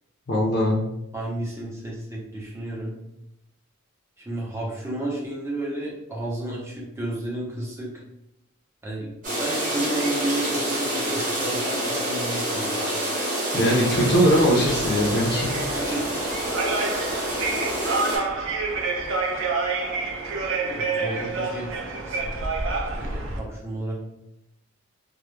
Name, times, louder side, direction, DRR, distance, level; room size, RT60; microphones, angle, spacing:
voice 1, 0.3-0.8 13.5-15.5, equal, 50° left, -5 dB, 0.5 m, -20 dB
voice 2, 1.1-2.9 4.2-7.9 8.8-12.8 15.7-16.2 20.6-22.5 22.9-24.0, right 1 dB, 10° right, -4 dB, 0.6 m, -32 dB
sound 1, 9.2-18.2, right 1 dB, 35° right, 0.9 m, -27 dB
sound 2, 14.0-23.4, right 3 dB, 60° right, 0.4 m, -28 dB
2.2 x 2.1 x 3.0 m, 0.83 s
head